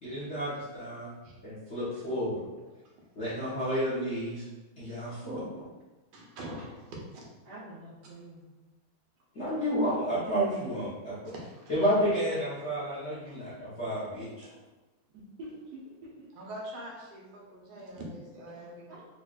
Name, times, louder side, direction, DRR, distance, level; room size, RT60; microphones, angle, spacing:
voice 1, 0.0-1.1 1.4-2.4 3.2-4.4 4.8-5.6 9.3-11.3 11.7-14.5, equal, 50° left, -10 dB, 0.9 m, -31 dB
voice 2, 6.1-7.2 11.2-11.7 14.4-14.6 16.3-18.9, right 1 dB, 80° right, -2 dB, 1.7 m, -43 dB
voice 3, 7.4-8.4 15.4-16.3 18.9-19.0, right 1 dB, 65° right, -9 dB, 1.0 m, -46 dB
4.6 x 2.4 x 2.3 m, 1.1 s
omnidirectional pair, 2.4 m